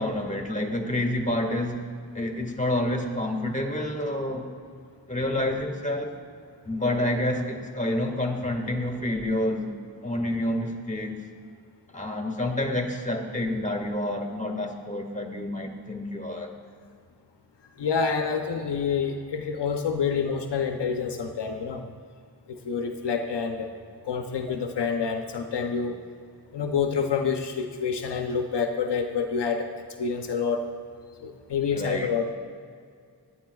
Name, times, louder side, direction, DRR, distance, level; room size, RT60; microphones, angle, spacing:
voice 1, 0.0-1.9 2.1-4.5 5.1-6.1 6.6-9.8 10.0-11.2 11.9-16.5 31.7-32.1, left 1 dB, 20° left, 2 dB, 1.7 m, -28 dB
voice 2, 17.8-21.8 22.5-23.7 24.1-26.0 26.5-29.7 30.0-30.7 31.2-32.2, left 6 dB, 85° left, 5 dB, 0.7 m, -27 dB
16.5 x 10.0 x 2.3 m, 2.2 s
cardioid pair, 45°, 40 cm